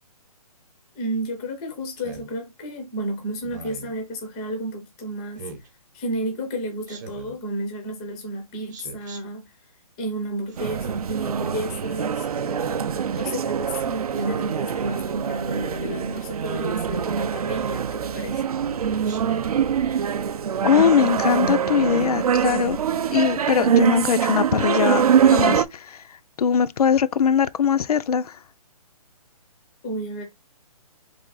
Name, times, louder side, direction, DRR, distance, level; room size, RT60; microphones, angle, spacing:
voice 1, 0.9-5.5 5.9-9.5 10.0-18.5 29.8-30.2, right 1 dB, 10° left, 0.5 m, -31 dB
Speech synthesizer, 2.0-2.3 3.4-3.9 5.4-5.7 6.9-7.4 8.7-9.2 10.5-11.0 12.3-12.8 14.1-14.6 15.7-16.1 17.4-17.8 19.0-19.5, right 4 dB, 30° right, 0.8 m, -39 dB
sound 1, 10.6-25.6, right 8 dB, 75° right, 0.5 m, -24 dB
voice 2, 20.6-22.8 23.1-26.1 26.4-28.4, left 7 dB, 75° left, 0.4 m, -21 dB
3.9 x 3.4 x 3.9 m
hypercardioid pair, 170°, 20 cm